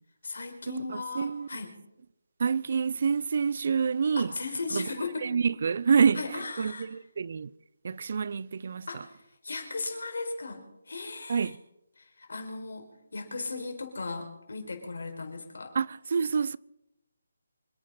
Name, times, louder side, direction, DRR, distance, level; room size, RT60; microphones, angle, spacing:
voice 1, 0.2-1.7 4.2-5.4 6.1-6.9 8.9-11.6 12.0-15.8, left 3 dB, 70° left, 4.9 m, -37 dB
voice 2, 1.2-1.5 2.4-4.3 4.7-4.8 5.2-7.5 7.8-8.9 11.3-11.5 15.8-16.6, right 6 dB, 50° right, 0.5 m, -27 dB
26.0 x 9.6 x 5.6 m
figure-of-eight pair, 160°, 0 cm